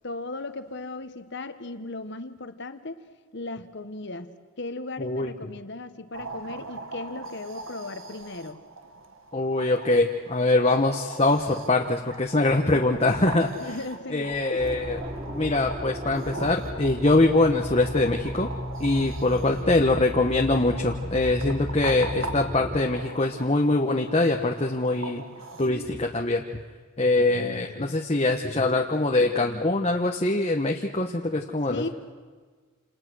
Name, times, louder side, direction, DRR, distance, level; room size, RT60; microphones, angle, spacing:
voice 1, 0.0-3.1 3.3-8.6 13.4-14.7 19.3-19.8 27.3-28.0 31.7-31.9, left 2 dB, 55° left, 10 dB, 1.5 m, -37 dB
voice 2, 5.0-5.3 9.3-13.5 14.1-15.0 15.3-18.5 18.8-25.2 25.6-26.4 27.0-31.9, left 2 dB, 30° left, 2 dB, 1.2 m, -23 dB
sound 1, 6.1-25.7, right 2 dB, 70° right, 1.8 m, -41 dB
sound 2, 14.6-22.8, equal, 25° right, 5.6 m, -35 dB
29.0 x 28.0 x 6.4 m, 1.5 s
head